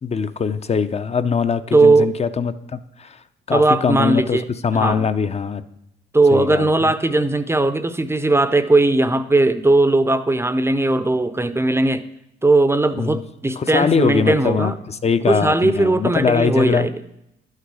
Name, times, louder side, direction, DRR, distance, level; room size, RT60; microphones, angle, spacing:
voice 1, 0.0-3.2 3.5-5.6 6.3-6.9 12.9-13.2 13.6-16.9, left 6 dB, 30° left, 12 dB, 0.6 m, -22 dB
voice 2, 1.7-2.1 3.5-4.5 4.8-5.1 6.1-12.0 12.4-14.7 15.3-16.9, right 2 dB, 15° right, 12 dB, 0.6 m, -18 dB
11.0 x 6.6 x 4.8 m, 0.83 s
cardioid pair, 90°, 20 cm